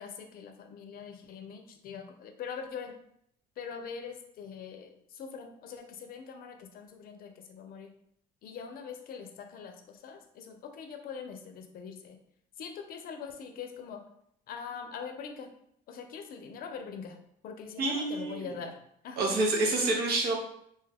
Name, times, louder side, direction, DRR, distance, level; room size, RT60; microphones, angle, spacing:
voice 1, 0.0-2.9 3.6-7.9 8.4-12.2 12.6-14.0 14.5-15.5 15.9-17.2 17.4-18.8 19.0-19.4, left 6 dB, 60° left, 5 dB, 0.5 m, -43 dB
voice 2, 17.8-18.5 19.2-20.3, right 2 dB, 70° right, 0 dB, 0.8 m, -28 dB
2.8 x 2.3 x 3.3 m, 0.72 s
cardioid pair, 110°, 17 cm